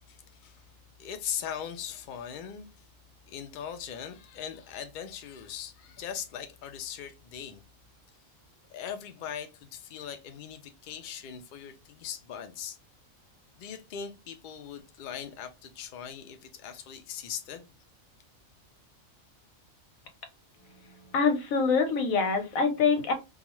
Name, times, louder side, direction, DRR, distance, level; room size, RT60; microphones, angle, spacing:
voice 1, 0.1-0.6 1.0-2.7 3.3-7.6 8.7-12.8 13.6-17.7, left 8 dB, 70° left, 0.4 m, -40 dB
voice 2, 20.6-23.1, left 5 dB, 90° left, 1.1 m, -26 dB
2.3 x 2.3 x 2.9 m
omnidirectional pair, 1.4 m